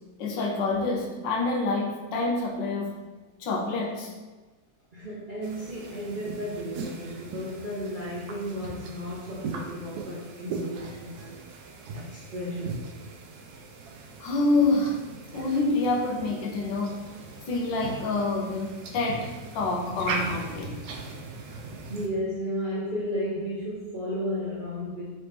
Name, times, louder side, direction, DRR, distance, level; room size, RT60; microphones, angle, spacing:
voice 1, 0.2-3.0 3.4-4.1 14.2-15.0 15.3-17.0 17.5-20.7, left 2 dB, 85° left, 0 dB, 1.4 m, -27 dB
voice 2, 4.9-11.4 11.9-12.8 21.8-25.1, equal, 90° right, -6 dB, 0.4 m, -33 dB
sound 1, 5.4-22.1, right 3 dB, 70° right, 1.0 m, -39 dB
4.3 x 3.1 x 3.3 m, 1.3 s
omnidirectional pair, 2.0 m